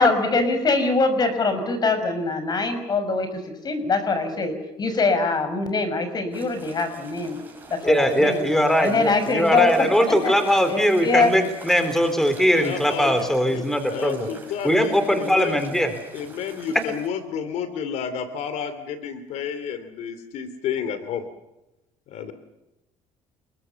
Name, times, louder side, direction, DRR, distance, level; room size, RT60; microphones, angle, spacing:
voice 1, 0.0-7.4 7.7-8.5 8.8-10.3 10.7-11.3, left 3 dB, 35° left, 10 dB, 5.7 m, -23 dB
sound 1, 6.3-17.1, right 3 dB, 15° right, 7.0 m, -45 dB
voice 2, 7.8-14.3 14.6-15.9, equal, 5° left, 9 dB, 3.9 m, -20 dB
voice 3, 12.6-13.6 13.9-15.5 16.1-21.3 22.1-22.3, left 7 dB, 70° left, 11 dB, 2.7 m, -31 dB
29.5 x 22.0 x 7.0 m, 0.95 s
cardioid pair, 115°, 12 cm